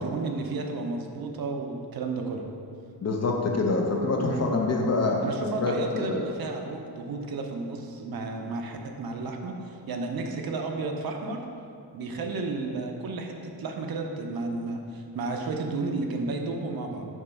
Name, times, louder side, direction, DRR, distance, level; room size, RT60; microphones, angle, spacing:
voice 1, 0.0-2.5 4.2-4.5 5.2-11.5 11.9-17.1, right 3 dB, 60° right, 3 dB, 0.7 m, -32 dB
voice 2, 3.0-5.2 5.6-6.2, left 3 dB, 40° left, 1 dB, 0.6 m, -26 dB
7.2 x 3.0 x 5.6 m, 2.4 s
wide cardioid pair, 165°, 40 cm